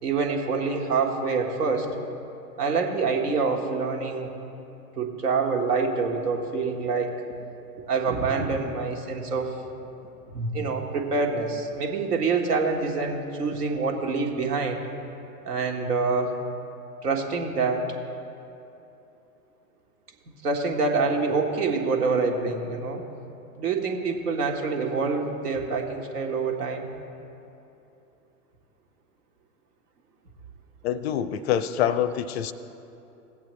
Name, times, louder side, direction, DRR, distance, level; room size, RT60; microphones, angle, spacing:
voice 1, 0.0-1.9 2.6-4.3 5.0-7.1 7.8-9.6 10.3-14.8 15.4-16.4 17.0-17.9 20.4-23.0 23.6-26.9, right 4 dB, 75° right, 2 dB, 1.6 m, -26 dB
voice 2, 30.8-32.5, left 10 dB, 45° left, 14 dB, 0.5 m, -25 dB
17.0 x 8.2 x 3.2 m, 2.8 s
hypercardioid pair, 105°, 46 cm